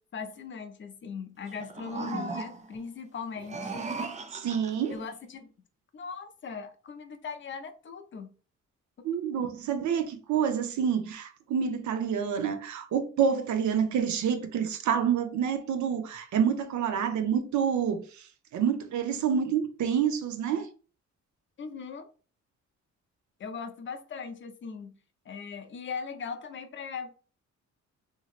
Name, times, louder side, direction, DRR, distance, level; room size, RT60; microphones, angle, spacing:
voice 1, 0.0-3.8 4.9-5.5 5.9-8.3 9.4-9.5 21.6-22.1 23.4-25.0 25.3-27.1, left 5 dB, 40° left, 0.6 m, -39 dB
sound 1, 1.5-2.8 3.4-5.0, right 3 dB, 25° right, 0.4 m, -37 dB
voice 2, 4.3-5.0 9.0-18.3 18.5-20.7, right 7 dB, 70° right, 0.6 m, -28 dB
3.0 x 2.7 x 2.4 m
cardioid pair, 95°, 30 cm